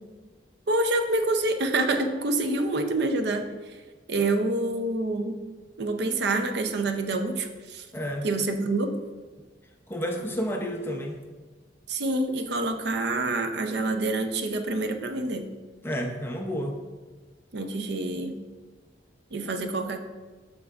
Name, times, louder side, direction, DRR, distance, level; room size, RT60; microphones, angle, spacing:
voice 1, 0.7-3.5 4.1-5.4 5.8-7.8 8.2-9.0 11.9-15.5 17.5-18.4 19.3-20.0, right 2 dB, 60° right, 6 dB, 0.6 m, -27 dB
voice 2, 7.9-8.3 9.9-11.2 15.8-16.8, equal, 10° left, 2 dB, 0.6 m, -30 dB
8.3 x 6.5 x 2.4 m, 1.3 s
head